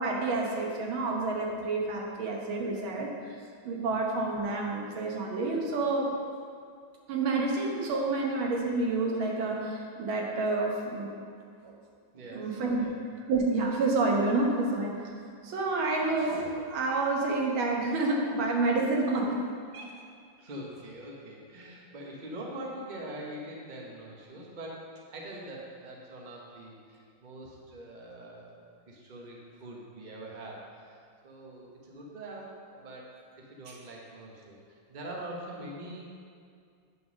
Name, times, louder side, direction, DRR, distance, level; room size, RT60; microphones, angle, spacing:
voice 1, 0.0-3.1 3.7-6.1 7.1-11.1 11.6-11.7 12.3-12.9 13.3-14.9 15.4-19.4 19.7-19.9, right 3 dB, 90° right, -1 dB, 1.9 m, -29 dB
voice 2, 12.1-13.0 20.4-28.6 28.9-36.1, right 1 dB, 30° right, -2 dB, 0.9 m, -44 dB
8.5 x 3.9 x 6.1 m, 2.3 s
omnidirectional pair, 2.1 m